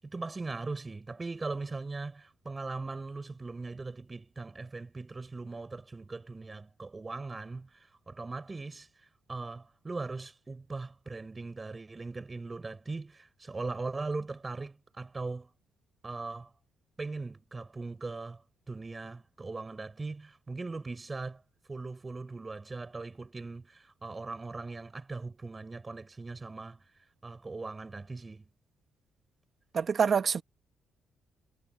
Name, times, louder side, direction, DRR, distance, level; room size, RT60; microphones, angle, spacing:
voice 1, 0.0-15.5 16.0-16.5 17.0-21.4 21.7-28.5, right 3 dB, 25° right, 6.8 m, -40 dB
voice 2, 29.7-30.4, right 6 dB, 45° right, 1.9 m, -26 dB
cardioid pair, 90°, 0 cm